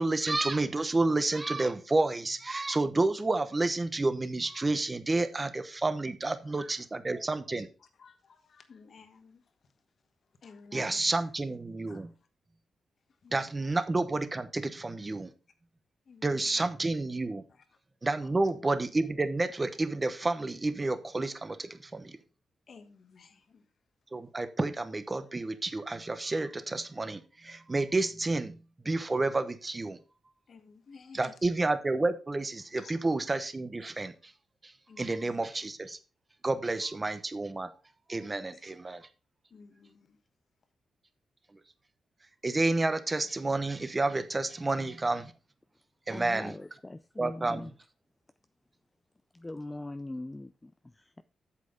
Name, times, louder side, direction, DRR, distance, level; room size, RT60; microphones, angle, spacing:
voice 1, 0.0-7.7 10.7-12.1 13.3-15.3 16.2-17.4 18.0-22.2 24.1-28.6 28.8-30.0 31.1-34.3 34.6-36.0 36.4-37.7 38.1-39.1 41.5-41.6 42.4-45.3 46.1-46.5 47.2-47.7, right 2 dB, 20° right, 0.8 m, -30 dB
voice 2, 8.0-9.4 10.4-11.0 11.9-12.0 13.2-13.7 16.1-16.7 22.7-23.6 30.5-31.3 32.8-32.9 34.9-35.4 38.3-38.6 39.5-40.2, left 5 dB, 50° left, 1.3 m, -53 dB
voice 3, 46.1-47.7 49.3-51.2, left 2 dB, 15° left, 0.4 m, -41 dB
8.4 x 7.5 x 3.9 m
cardioid pair, 125°, 0 cm